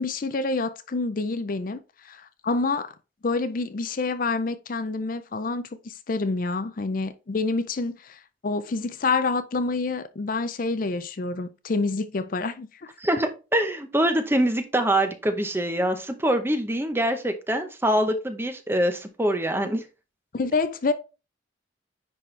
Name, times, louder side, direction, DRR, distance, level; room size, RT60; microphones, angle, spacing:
voice 1, 0.0-2.9 3.2-12.7 20.3-20.9, left 3 dB, 45° left, 0.5 m, -27 dB
voice 2, 13.0-19.8, right 1 dB, 10° right, 0.8 m, -24 dB
10.0 x 4.2 x 3.2 m
head